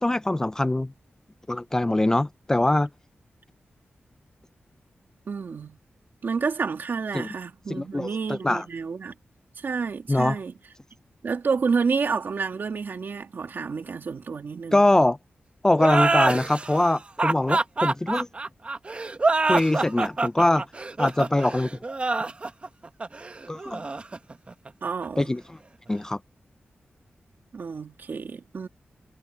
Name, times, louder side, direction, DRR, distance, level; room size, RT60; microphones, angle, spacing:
voice 1, 0.0-0.9 1.5-2.9 7.1-7.3 7.7-8.7 10.1-10.4 14.7-15.2 15.6-18.3 19.5-20.6 21.0-21.7 23.5-23.8 25.2-25.6 25.9-26.2, left 1 dB, 15° left, 0.4 m, -23 dB
voice 2, 5.3-5.8 6.2-9.1 9.6-10.5 11.2-14.8 24.8-25.3 27.5-28.7, right 5 dB, 60° right, 2.2 m, -29 dB
sound 1, 15.8-25.1, right 3 dB, 30° right, 1.0 m, -26 dB
wide cardioid pair, 130°, 4 cm